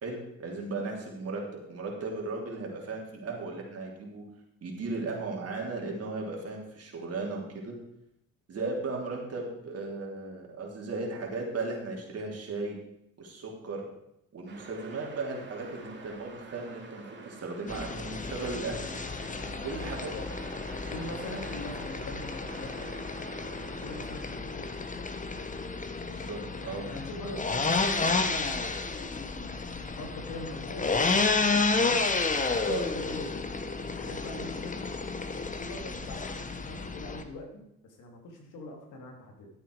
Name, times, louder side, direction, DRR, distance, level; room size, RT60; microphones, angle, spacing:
voice 1, 0.0-4.2 4.6-7.8 8.5-12.8 13.2-13.9 14.3-18.9 19.6-20.1 26.1-26.9 32.6-32.8, right 3 dB, 55° right, -1 dB, 3.4 m, -36 dB
sound 1, 14.5-24.3, right 4 dB, 35° right, 2.6 m, -47 dB
sound 2, 17.7-37.2, left 3 dB, 25° left, 1.1 m, -31 dB
voice 2, 20.0-23.0 23.5-25.1 26.6-28.8 29.8-31.9 32.6-33.4 33.8-34.9 35.6-39.5, left 2 dB, 85° left, 2 dB, 2.6 m, -43 dB
13.0 x 8.0 x 4.8 m, 0.78 s
cardioid pair, 90°, 30 cm